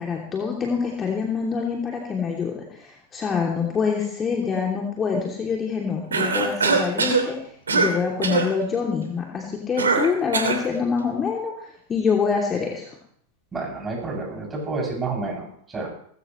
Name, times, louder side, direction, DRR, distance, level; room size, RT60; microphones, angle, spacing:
voice 1, 0.0-7.4 7.7-11.5 11.9-12.9, left 5 dB, 20° left, -1 dB, 2.9 m, -25 dB
Cough, 6.1-7.3 7.7-8.0 8.2-8.5 9.8-10.7, right 4 dB, 70° right, 2.9 m, -22 dB
voice 2, 13.5-15.9, right 3 dB, 15° right, 0 dB, 7.4 m, -29 dB
20.0 x 16.0 x 3.2 m, 0.63 s
figure-of-eight pair, 90°, 0 cm